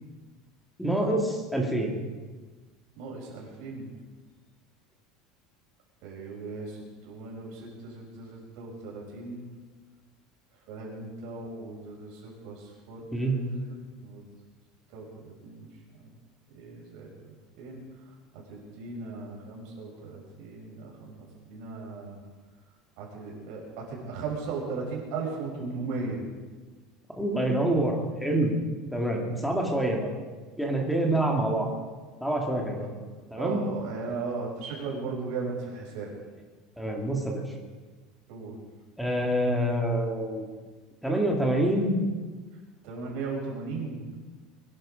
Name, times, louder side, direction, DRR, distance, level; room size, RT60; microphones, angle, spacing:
voice 1, 0.8-2.0 13.1-13.3 27.1-28.5 28.9-30.1 30.6-31.7 32.2-32.9 33.3-33.6 36.8-37.4 39.0-40.5 41.0-42.0, right 1 dB, ahead, 0 dB, 2.1 m, -26 dB
voice 2, 3.0-3.9 6.0-9.5 10.7-13.6 14.0-14.2 14.9-15.7 16.5-17.1 17.6-17.8 18.5-22.2 23.0-26.2 32.8-32.9 33.4-36.1 38.3-38.6 42.8-44.0, right 4 dB, 50° right, -2 dB, 5.7 m, -37 dB
23.0 x 11.0 x 5.1 m, 1.4 s
cardioid pair, 175°, 0 cm